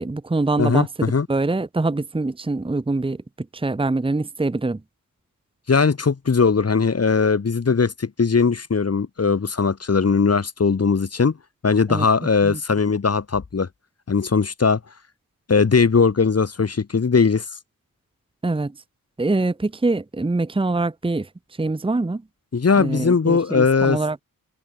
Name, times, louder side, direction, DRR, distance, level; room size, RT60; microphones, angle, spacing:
voice 1, 0.0-3.2 3.5-4.8 11.9-12.1 12.4-12.6 18.4-18.7 19.2-21.3 21.6-22.2 22.8-24.2, right 2 dB, 15° right, 1.0 m, -24 dB
voice 2, 0.6-1.3 5.7-11.3 11.6-13.7 14.1-14.8 15.5-17.4 22.5-24.2, left 5 dB, 45° left, 2.0 m, -19 dB
open air
cardioid pair, 65°, 35 cm